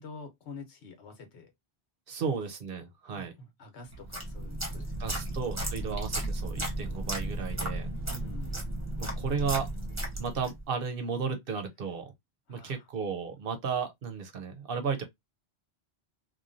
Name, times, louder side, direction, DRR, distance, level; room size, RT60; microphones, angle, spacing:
voice 1, 0.0-1.5 2.1-2.3 3.1-5.3 8.0-8.6 12.5-12.9, left 4 dB, 80° left, 1.2 m, -48 dB
voice 2, 2.1-3.3 5.0-7.9 9.0-9.7 10.2-12.1 12.5-15.0, right 6 dB, 60° right, 0.8 m, -34 dB
sound 1, 3.9-10.6, right 1 dB, 15° right, 0.8 m, -34 dB
3.0 x 2.2 x 2.4 m
omnidirectional pair, 1.1 m